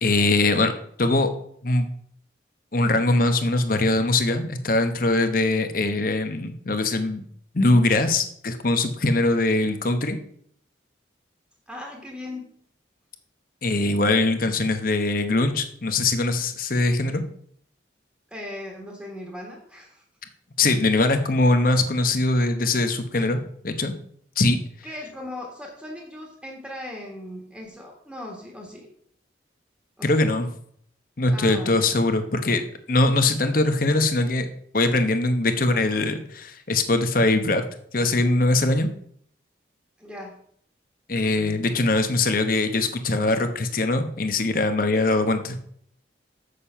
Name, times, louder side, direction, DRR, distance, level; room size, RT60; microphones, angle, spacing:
voice 1, 0.0-0.7 1.0-1.3 1.6-1.9 2.7-7.2 7.5-10.2 13.6-17.2 20.6-23.4 23.6-23.9 24.4-24.6 30.0-30.5 31.2-34.5 34.7-37.6 37.9-38.9 41.1-45.6, left 2 dB, 45° left, 8 dB, 0.9 m, -22 dB
voice 2, 11.7-12.5 18.3-20.0 23.1-23.4 24.8-28.9 30.0-30.2 31.3-31.8 40.0-40.4 44.9-45.1, left 1 dB, 5° right, -1 dB, 1.5 m, -38 dB
7.2 x 6.7 x 5.6 m, 0.64 s
head